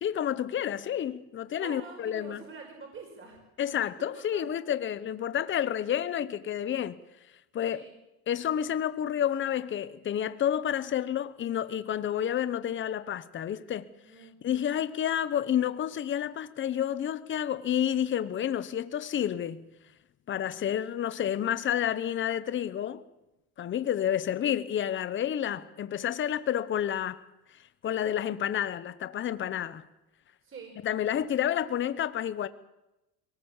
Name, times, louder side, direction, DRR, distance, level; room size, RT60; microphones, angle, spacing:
voice 1, 0.0-2.4 3.6-7.0 7.5-7.8 8.3-13.9 14.2-19.7 20.3-23.0 23.6-27.2 27.8-29.9 30.8-32.5, left 10 dB, 25° left, 0.9 m, -30 dB
voice 2, 1.5-3.4 3.7-4.4 7.7-7.9 14.0-14.8 30.4-30.8, right 4 dB, 25° right, 5.1 m, -47 dB
23.0 x 18.5 x 7.2 m
cardioid pair, 140°, 46 cm